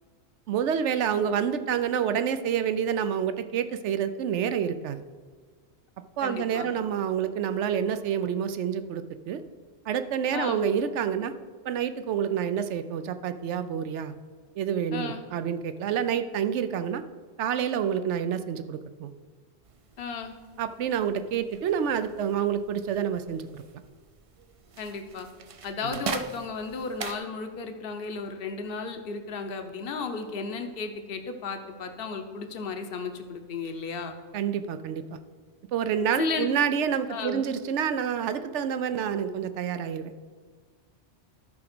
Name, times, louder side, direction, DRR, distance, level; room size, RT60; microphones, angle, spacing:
voice 1, 0.5-5.0 6.2-9.4 9.9-11.3 11.6-14.1 14.6-17.0 17.4-19.1 20.6-23.6 25.8-26.0 34.3-35.2 35.7-40.1, right 8 dB, 85° right, 11 dB, 0.9 m, -28 dB
voice 2, 6.2-6.7 10.3-10.6 14.9-15.2 20.0-20.3 24.8-25.3 25.6-34.1 36.2-36.5 37.1-37.4, left 4 dB, 55° left, 6 dB, 1.0 m, -34 dB
sound 1, 19.6-27.2, right 6 dB, 50° right, 0.4 m, -42 dB
12.5 x 4.9 x 6.0 m, 1.5 s
omnidirectional pair, 1.2 m